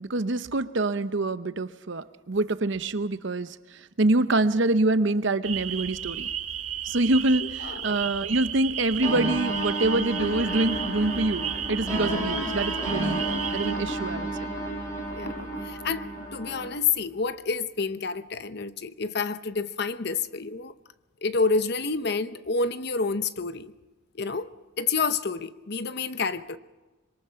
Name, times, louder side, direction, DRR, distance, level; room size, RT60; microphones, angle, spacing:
voice 1, 0.0-3.6 4.0-6.3 6.8-14.5, right 2 dB, 60° right, 0.8 m, -26 dB
sound 1, 5.4-13.7, right 9 dB, 85° right, 1.7 m, -33 dB
voice 2, 7.4-8.1 15.2-16.1 16.3-20.7 21.2-23.7 24.1-24.5 24.8-26.6, left 4 dB, 50° left, 0.8 m, -29 dB
sound 2, 9.0-16.6, right 1 dB, 15° left, 6.1 m, -32 dB
sound 3, 10.2-17.2, left 1 dB, 70° left, 3.3 m, -39 dB
25.5 x 22.5 x 5.7 m
head